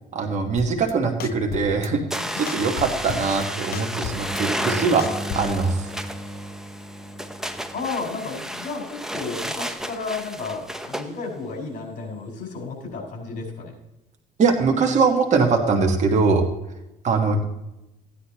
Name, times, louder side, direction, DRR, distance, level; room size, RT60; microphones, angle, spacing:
voice 1, 0.1-5.0 5.3-5.9 14.4-16.4 17.0-17.4, right 4 dB, 45° right, 2 dB, 1.4 m, -22 dB
sound 1, 0.6-0.9 1.2-1.9 2.2-3.5 3.7-5.6, left 9 dB, 65° left, 0.7 m, -34 dB
sound 2, 2.1-11.1, equal, 5° right, 0.8 m, -32 dB
sound 3, 4.1-8.7 12.0-12.5, right 1 dB, 35° left, 1.3 m, -38 dB
voice 2, 7.7-13.7, left 4 dB, 50° left, 0 dB, 4.9 m, -32 dB
15.0 x 9.8 x 2.9 m, 0.91 s
cardioid pair, 110°, 17 cm